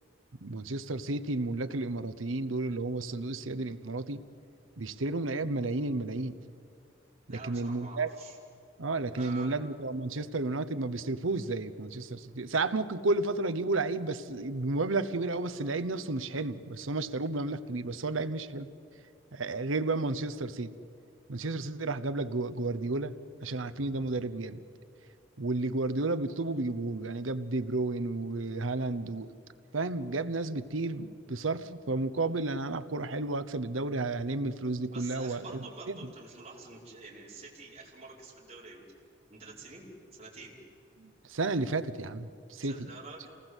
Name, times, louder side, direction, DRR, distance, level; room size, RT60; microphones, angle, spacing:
voice 1, 0.4-4.2 4.8-6.4 7.3-8.1 8.8-18.7 19.3-20.7 21.3-24.6 25.4-29.3 29.7-35.6 35.9-36.1 41.0-42.9, right 2 dB, 85° right, 11 dB, 1.0 m, -32 dB
voice 2, 7.3-8.4 9.1-9.6 34.9-38.8 39.3-39.8 40.2-40.6 42.6-43.3, right 3 dB, 35° right, -5 dB, 5.2 m, -47 dB
27.5 x 19.5 x 8.2 m, 2.5 s
head